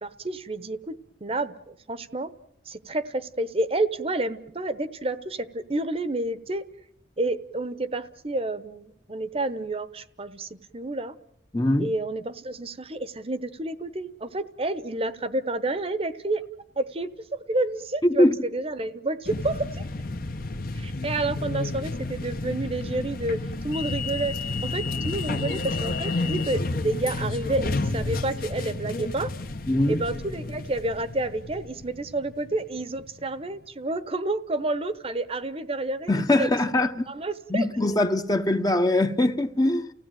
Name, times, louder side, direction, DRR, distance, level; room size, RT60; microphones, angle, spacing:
voice 1, 0.0-2.3 2.7-6.6 7.2-11.1 11.8-16.4 16.8-19.8 20.7-29.3 29.9-36.6 37.1-37.6, right 2 dB, 35° right, 0.9 m, -30 dB
voice 2, 11.5-11.9 18.0-18.3 29.7-30.1 36.1-37.0 37.5-39.9, left 1 dB, 20° left, 0.9 m, -22 dB
sound 1, 19.2-33.2, left 2 dB, 50° left, 1.1 m, -31 dB
30.0 x 16.5 x 9.1 m
head